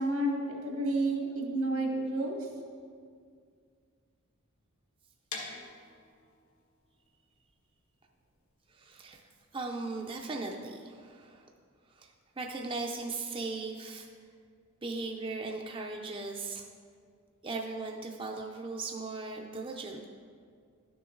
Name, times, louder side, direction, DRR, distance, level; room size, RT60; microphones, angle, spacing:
voice 1, 0.0-2.4, right 1 dB, 85° right, -1 dB, 1.8 m, -30 dB
sound 1, 5.3-11.1, left 4 dB, 80° left, 1.4 m, -47 dB
voice 2, 8.7-9.3 9.5-11.5 11.9-14.1 14.8-16.7 17.4-20.1, right 3 dB, 25° right, 1 dB, 0.5 m, -38 dB
11.5 x 6.7 x 3.8 m, 2.1 s
head